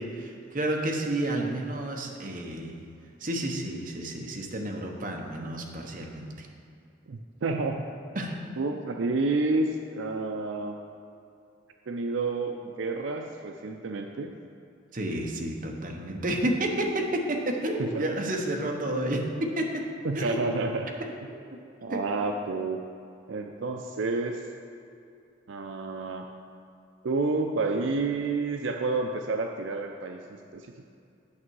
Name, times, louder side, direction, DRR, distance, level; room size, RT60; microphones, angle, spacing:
voice 1, 0.0-2.7 3.2-6.5 8.1-8.3 14.9-19.9 20.1-20.5 21.0-21.1 21.9-22.0, right 1 dB, 45° right, 1 dB, 0.9 m, -30 dB
voice 2, 7.1-7.8 8.6-10.8 11.9-14.3 17.8-18.0 20.0-20.9 21.8-22.8 23.3-24.4 25.5-26.3 27.0-30.9, right 3 dB, 75° right, 4 dB, 0.5 m, -29 dB
8.6 x 6.6 x 4.7 m, 2.6 s
head